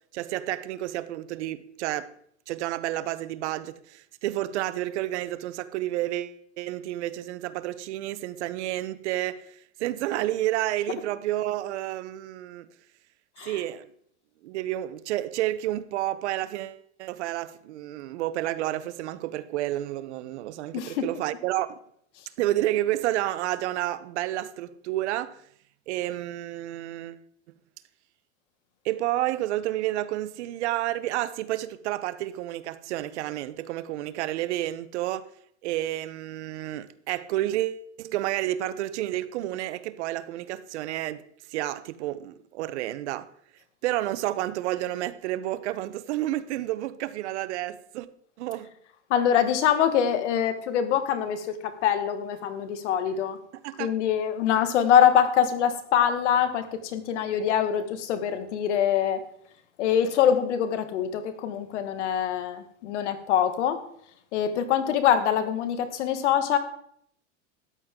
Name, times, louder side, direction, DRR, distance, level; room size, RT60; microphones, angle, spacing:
voice 1, 0.1-2.1 2.5-12.7 13.4-13.9 14.4-21.8 22.4-25.4 25.9-27.2 28.8-35.3 35.6-41.2 41.5-43.3 43.8-48.1 48.4-48.7 53.6-53.9, right 14 dB, 75° right, 0.9 m, -30 dB
voice 2, 20.7-21.1 49.1-53.4 53.8-59.2 59.8-63.8 64.3-66.6, left 9 dB, 80° left, 1.7 m, -24 dB
13.5 x 9.5 x 3.7 m
supercardioid pair, 150°, 35 cm